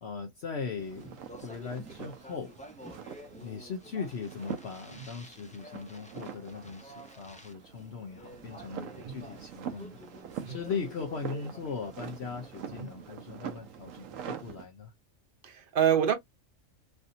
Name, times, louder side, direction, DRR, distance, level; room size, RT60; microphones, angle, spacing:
voice 1, 0.0-1.2 1.4-2.5 3.4-10.0 10.4-14.9, left 5 dB, 60° left, 0.9 m, -39 dB
Speech, 0.7-13.1, equal, 10° left, 0.3 m, -51 dB
sound 1, 0.8-14.7, right 8 dB, 75° right, 1.0 m, -44 dB
voice 2, 15.4-16.1, right 9 dB, 50° right, 0.8 m, -27 dB
3.2 x 2.7 x 2.6 m
omnidirectional pair, 1.4 m